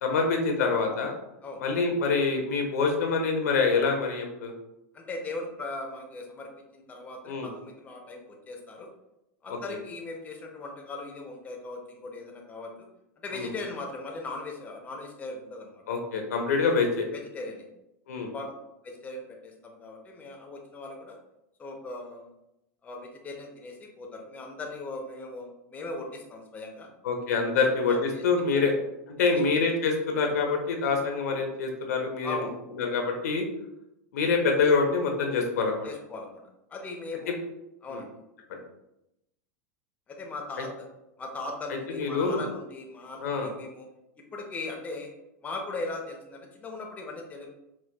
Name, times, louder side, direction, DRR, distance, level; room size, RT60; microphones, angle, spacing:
voice 1, 0.0-1.1 1.6-4.5 7.3-7.5 9.5-9.6 13.3-13.5 15.9-17.1 18.1-18.3 27.0-28.7 29.2-32.5 32.7-33.4 34.1-35.9 37.9-38.0 38.5-38.6 41.9-42.4 43.2-43.5, left 4 dB, 85° left, 3 dB, 0.7 m, -26 dB
voice 2, 4.9-8.9 9.4-12.7 13.2-15.8 17.1-17.7 18.3-18.5 18.8-21.2 21.6-22.3 22.8-26.9 27.6-28.2 28.5-28.7 29.3-29.4 32.2-32.5 35.8-36.4 36.7-37.4 37.8-38.1 40.1-40.9 41.2-43.9 44.3-45.1 45.4-47.5, left 2 dB, 15° left, 1 dB, 0.5 m, -39 dB
4.2 x 2.2 x 2.2 m, 0.88 s
supercardioid pair, 130°, 8 cm